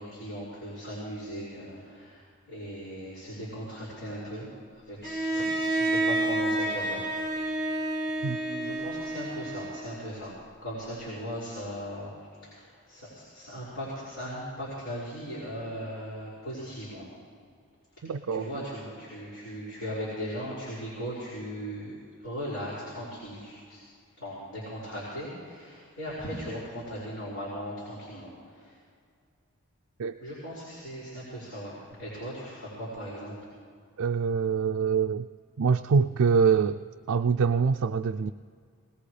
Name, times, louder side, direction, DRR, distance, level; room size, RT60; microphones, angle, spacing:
voice 1, 0.0-4.5 4.7-7.0 7.3-7.9 8.2-12.1 12.4-17.1 18.0-23.8 24.2-28.8 30.2-33.3, equal, 60° left, -9 dB, 5.4 m, -38 dB
Bowed string instrument, 5.0-10.0, right 2 dB, 15° left, 4.8 m, -29 dB
voice 2, 18.0-18.5 30.0-30.2 34.0-35.3 35.6-38.3, right 5 dB, 75° right, 7 dB, 0.4 m, -25 dB
20.5 x 20.0 x 3.3 m, 2.1 s
head